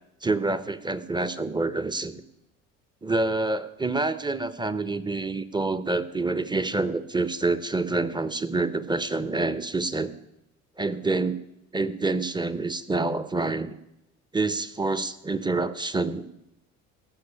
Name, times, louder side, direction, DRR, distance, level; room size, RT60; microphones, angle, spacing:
voice 1, 0.2-2.2 3.0-10.1 10.8-11.4 11.7-13.8 14.3-16.3, right 3 dB, 10° right, 14 dB, 1.0 m, -27 dB
17.5 x 6.3 x 8.5 m, 0.86 s
hypercardioid pair, 60°, 41 cm